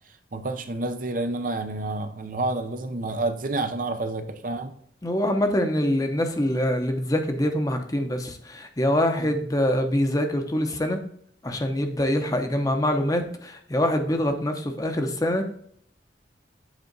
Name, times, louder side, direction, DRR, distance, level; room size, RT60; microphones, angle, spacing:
voice 1, 0.3-4.7 9.2-9.4, right 2 dB, 50° right, 7 dB, 0.7 m, -29 dB
voice 2, 5.0-11.0 11.4-15.4, left 1 dB, 20° left, 5 dB, 0.8 m, -24 dB
8.1 x 4.2 x 3.9 m, 0.65 s
head